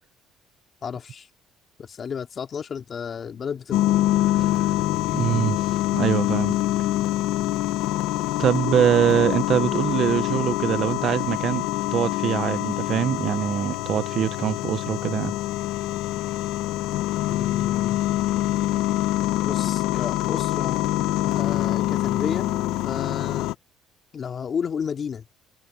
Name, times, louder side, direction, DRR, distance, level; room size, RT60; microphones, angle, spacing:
voice 1, 0.8-1.3 1.8-4.0 17.3-18.0 19.4-20.9 21.2-22.5 22.8-23.5 24.1-25.2, left 7 dB, 40° left, 2.6 m, -32 dB
sound 1, 3.7-23.5, left 15 dB, 85° left, 1.3 m, -25 dB
voice 2, 5.1-6.6 8.4-11.7 11.9-15.3, right 10 dB, 55° right, 0.8 m, -23 dB
cardioid pair, 110°, 0 cm